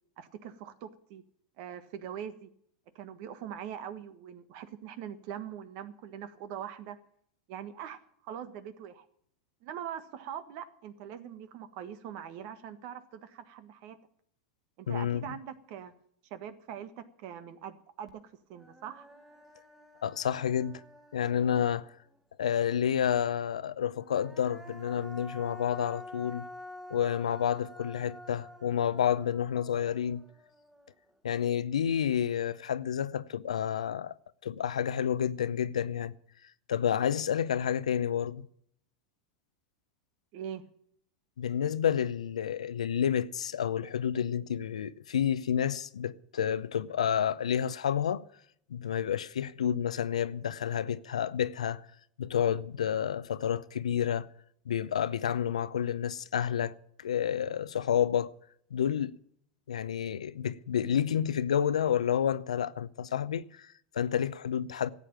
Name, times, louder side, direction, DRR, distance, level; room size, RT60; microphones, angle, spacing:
voice 1, 0.2-1.2 1.6-2.5 2.9-7.0 7.5-9.1 9.6-14.0 14.8-15.9 16.3-18.2 18.5-19.1 40.3-40.7, right 9 dB, 60° right, 1.4 m, -42 dB
voice 2, 14.9-15.3 20.0-20.8 21.1-21.9 22.4-26.4 26.9-30.2 31.2-34.2 34.4-36.1 36.7-38.5 41.4-48.2 48.7-51.8 52.2-54.3 54.7-58.3 58.7-59.2 59.7-64.9, left 9 dB, 85° left, 0.6 m, -30 dB
Human voice, 18.1-18.2 18.5-22.2 23.9-31.1, left 1 dB, 10° right, 1.8 m, -49 dB
13.0 x 8.4 x 9.0 m
hypercardioid pair, 95°, 3 cm